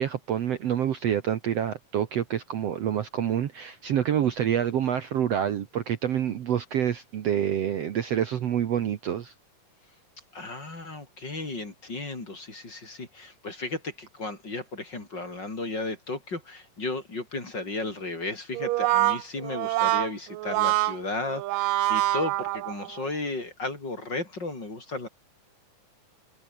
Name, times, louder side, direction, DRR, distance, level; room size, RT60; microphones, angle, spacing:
voice 1, 0.0-9.3, right 9 dB, 60° right, 2.1 m, -27 dB
voice 2, 10.3-25.1, left 2 dB, 30° left, 5.5 m, -34 dB
Brass instrument, 18.5-23.1, right 17 dB, 85° right, 2.4 m, -25 dB
omnidirectional pair, 3.8 m